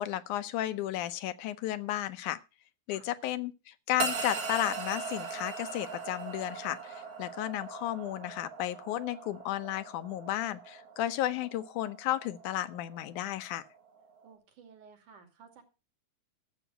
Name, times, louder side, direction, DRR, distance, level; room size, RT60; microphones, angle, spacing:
voice 1, 0.0-2.4 2.9-13.6, left 13 dB, 85° left, 2.4 m, -33 dB
sound 1, 4.0-14.3, right 5 dB, 70° right, 3.6 m, -40 dB
voice 2, 14.2-15.6, right 6 dB, 90° right, 4.1 m, -55 dB
13.0 x 7.9 x 6.1 m
omnidirectional pair, 3.4 m